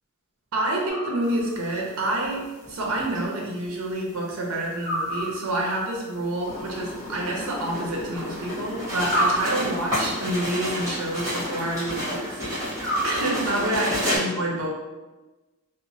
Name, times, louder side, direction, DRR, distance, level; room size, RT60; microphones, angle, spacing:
voice 1, 0.5-12.7 13.0-14.7, right 1 dB, 85° right, -2 dB, 0.6 m, -28 dB
sound 1, 0.9-1.7 4.8-5.8 9.0-10.1 12.8-13.8, right 1 dB, 40° right, 1.1 m, -29 dB
sound 2, 1.4-1.5 2.6-3.5 3.8-3.9 4.2-4.3 4.8-5.2 5.5-14.2, equal, 15° right, 1.2 m, -31 dB
Motor vehicle (road) / Siren, 6.5-10.6, left 1 dB, 35° left, 0.4 m, -40 dB
2.9 x 2.0 x 2.6 m, 1.1 s
head